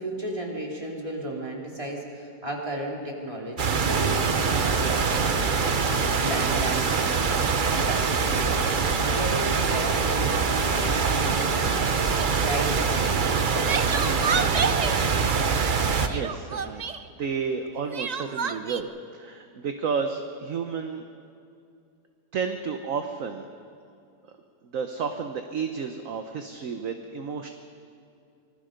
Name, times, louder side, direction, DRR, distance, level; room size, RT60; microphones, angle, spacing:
voice 1, 0.0-7.3 7.7-8.7 9.0-11.5 12.4-14.8, right 1 dB, 20° right, -1 dB, 3.1 m, -34 dB
sound 1, 3.6-16.1, right 5 dB, 40° right, 0.8 m, -24 dB
Crying sobbing, 12.1-12.4 13.2-15.0 16.1-17.0 17.9-18.8, right 6 dB, 90° right, 0.3 m, -29 dB
voice 2, 15.7-16.8 17.2-21.0 22.3-23.5 24.7-27.5, right 5 dB, 55° right, 6 dB, 1.3 m, -31 dB
25.0 x 20.5 x 5.2 m, 2.5 s
omnidirectional pair, 1.8 m